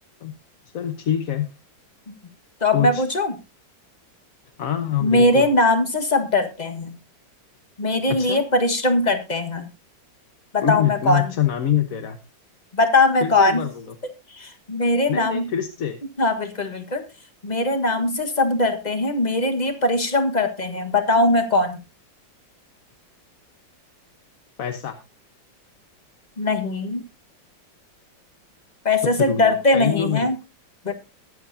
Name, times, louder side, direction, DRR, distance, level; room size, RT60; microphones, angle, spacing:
voice 1, 0.7-1.5 2.7-3.0 4.6-5.5 8.1-8.4 10.6-12.2 13.2-13.8 15.1-16.0 24.6-25.0 29.2-30.3, left 10 dB, 55° left, 6 dB, 1.3 m, -25 dB
voice 2, 2.6-3.3 5.0-6.9 7.8-9.7 10.5-11.3 12.7-13.6 14.3-15.5 16.2-17.0 17.4-21.8 26.4-27.0 28.8-30.3 30.8-30.9, left 2 dB, 25° left, 7 dB, 1.4 m, -20 dB
22.0 x 7.6 x 2.7 m, 0.27 s
omnidirectional pair, 2.0 m